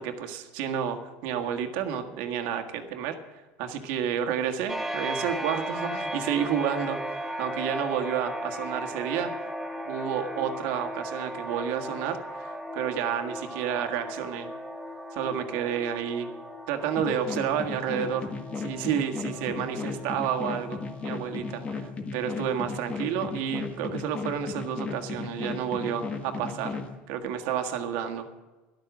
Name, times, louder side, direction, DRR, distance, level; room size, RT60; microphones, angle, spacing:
voice 1, 0.0-9.5 9.8-14.5 15.1-16.3 16.7-18.3 18.6-26.8 27.1-28.4, right 8 dB, 75° right, 5 dB, 1.7 m, -30 dB
sound 1, 4.7-21.9, right 1 dB, 5° right, 1.2 m, -37 dB
sound 2, 17.0-26.9, left 4 dB, 25° left, 1.6 m, -35 dB
13.0 x 12.0 x 6.1 m, 1.2 s
cardioid pair, 140°, 5 cm